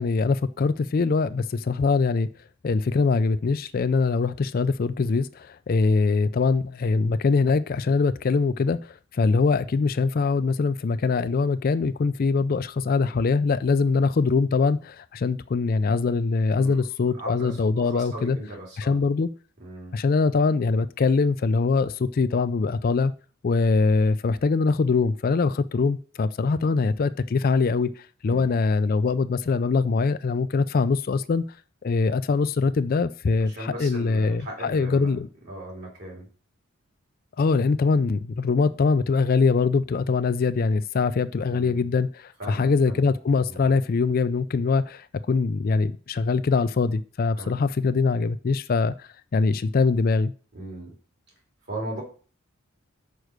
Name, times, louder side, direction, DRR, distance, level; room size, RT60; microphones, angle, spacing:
voice 1, 0.0-2.3 2.6-18.4 18.8-19.3 19.9-23.1 23.4-31.4 31.8-35.3 37.4-50.3, left 4 dB, 45° left, 0.4 m, -23 dB
voice 2, 17.2-19.0 19.6-19.9 28.2-28.6 33.4-35.2 35.4-36.3 41.5-41.9 42.4-43.0 43.5-43.7 47.4-47.6 50.5-50.9 51.7-52.0, right 1 dB, 50° right, 3.1 m, -38 dB
6.5 x 4.7 x 6.4 m
head